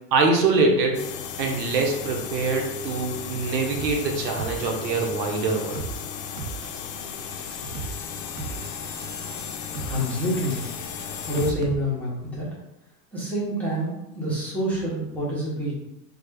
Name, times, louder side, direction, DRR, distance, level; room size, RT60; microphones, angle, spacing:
voice 1, 0.1-1.1 1.4-5.8, right 3 dB, 85° right, 1 dB, 1.0 m, -24 dB
sound 1, 0.9-11.5, left 7 dB, 80° left, 0.7 m, -35 dB
sound 2, 3.7-4.0 4.4-5.1 5.4-6.0 6.4-7.1 7.4-8.0 8.4-9.1 9.4-10.0 10.4-11.7, right 4 dB, 45° right, 0.4 m, -36 dB
voice 2, 9.8-10.6 11.3-12.5 13.1-15.7, equal, 5° left, -9 dB, 0.7 m, -27 dB
4.8 x 2.3 x 2.2 m, 0.87 s
supercardioid pair, 140°, 49 cm